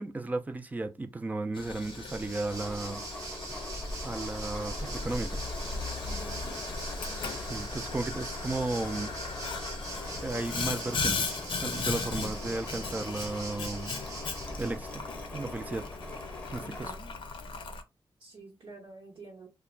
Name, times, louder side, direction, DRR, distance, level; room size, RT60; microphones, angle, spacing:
voice 1, 0.0-3.0 4.0-5.4 7.4-9.1 10.2-11.3 11.6-13.9 14.6-15.1 15.3-15.9 16.5-16.9, right 2 dB, 20° right, 0.3 m, -34 dB
Boiling, 1.5-17.8, left 4 dB, 65° left, 0.5 m, -38 dB
Waves surf, 1.6-14.9, right 2 dB, 35° right, 0.7 m, -43 dB
sound 1, 2.5-16.9, left 2 dB, 20° left, 0.8 m, -42 dB
voice 2, 6.1-6.5 16.6-17.1 18.2-19.5, right 2 dB, 65° right, 0.9 m, -48 dB
2.4 x 2.1 x 3.1 m
wide cardioid pair, 135°, 9 cm